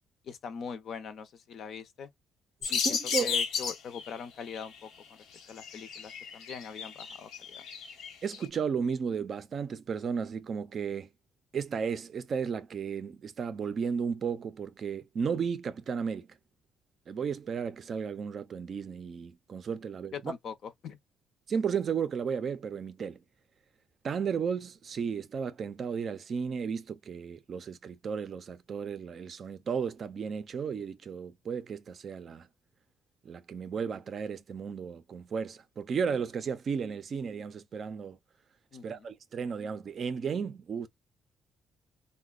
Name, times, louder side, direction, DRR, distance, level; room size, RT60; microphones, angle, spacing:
voice 1, 0.2-2.1 2.7-4.9 5.5-7.6 20.1-20.5 20.8-21.0 38.7-39.1, left 6 dB, 55° left, 0.6 m, -42 dB
sound 1, 2.6-4.1 4.5-4.8 5.4-8.5, left 6 dB, 75° left, 1.0 m, -33 dB
voice 2, 2.6-3.4 8.2-11.1 11.5-16.3 17.1-20.3 21.5-23.2 24.0-32.5 33.2-38.2 38.8-40.9, right 6 dB, 40° right, 0.4 m, -34 dB
3.9 x 2.1 x 2.3 m
cardioid pair, 145°, 0 cm